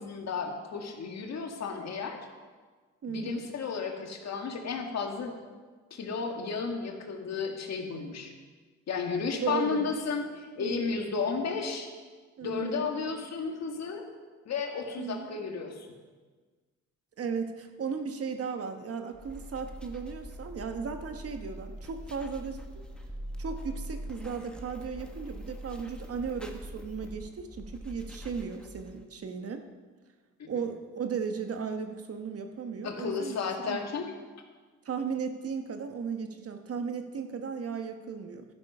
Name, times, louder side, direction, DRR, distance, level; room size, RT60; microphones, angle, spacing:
voice 1, 0.0-2.2 3.1-5.3 5.9-8.3 8.9-11.9 12.4-14.0 14.5-15.9 30.4-30.5 32.8-34.1, left 5 dB, 60° left, 3 dB, 2.1 m, -33 dB
voice 2, 3.0-3.5 9.4-10.0 10.6-10.8 12.4-12.9 15.0-15.5 17.2-22.6 23.4-29.6 30.5-33.4 33.7-33.8 34.8-38.5, right 6 dB, 50° right, 6 dB, 1.3 m, -36 dB
sound 1, 19.1-29.0, equal, 5° left, 1.4 m, -43 dB
13.0 x 10.5 x 5.6 m, 1.4 s
cardioid pair, 90°, 30 cm